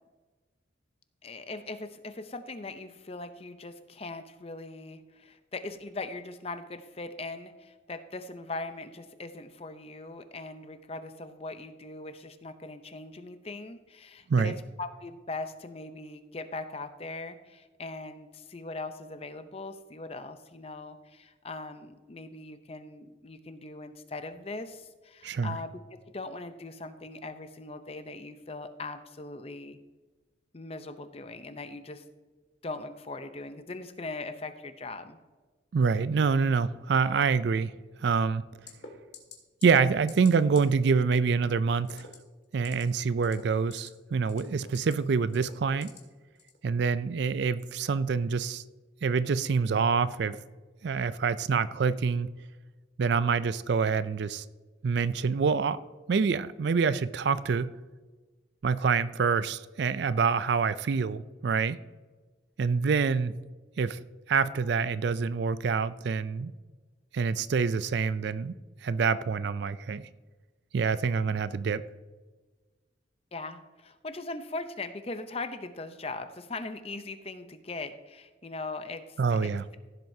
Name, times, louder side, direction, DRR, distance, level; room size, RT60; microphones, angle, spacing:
voice 1, 1.2-25.8 26.1-29.8 30.5-32.0 32.6-35.2 73.3-79.5, left 3 dB, 30° left, 0.6 m, -40 dB
voice 2, 25.2-25.6 35.7-37.7 38.0-38.4 39.6-42.1 42.5-45.9 46.6-48.6 49.0-50.4 50.8-52.3 53.0-54.4 54.8-55.8 56.1-57.7 58.6-61.8 62.6-63.3 63.8-64.0 64.3-66.5 67.1-68.5 68.8-70.1 70.7-71.8 79.2-79.6, right 5 dB, 60° right, 0.4 m, -26 dB
sound 1, 38.7-38.9 39.1-39.3 39.6-39.8 40.1-40.3 40.5-40.6 41.8-42.1 42.5-42.8 43.2-43.9 44.2-44.9 45.3-46.0 46.4-46.6, left 5 dB, 60° left, 2.0 m, -46 dB
15.0 x 7.6 x 2.7 m
head